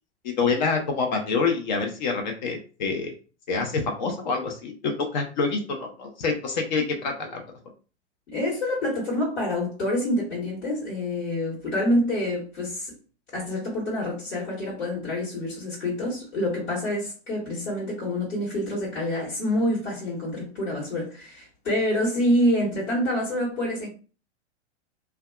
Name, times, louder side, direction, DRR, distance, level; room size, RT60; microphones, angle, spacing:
voice 1, 0.2-3.1 3.5-7.4, left 4 dB, 40° left, 0.5 m, -26 dB
voice 2, 8.3-12.9 13.3-23.9, left 1 dB, 60° left, 1.2 m, -27 dB
2.5 x 2.2 x 2.2 m
figure-of-eight pair, 100°, 36 cm